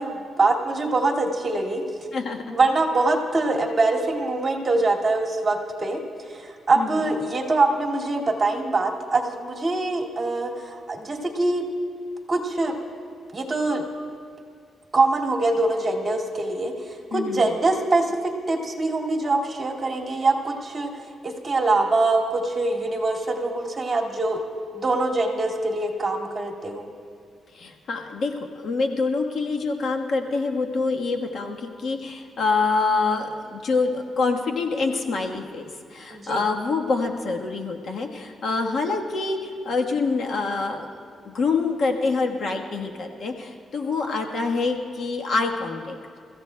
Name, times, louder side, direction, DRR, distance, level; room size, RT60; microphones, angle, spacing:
voice 1, 0.0-1.8 2.5-6.0 6.2-11.7 12.3-12.8 13.3-13.8 14.9-24.4 24.7-26.9 36.1-36.4, right 2 dB, 30° right, -1 dB, 2.2 m, -24 dB
voice 2, 2.1-2.6 6.8-7.1 17.1-17.6 27.5-35.6 35.9-40.9 41.2-46.0, left 4 dB, 60° left, 2 dB, 1.3 m, -26 dB
28.5 x 15.0 x 2.3 m, 2.2 s
cardioid pair, 100°, 0 cm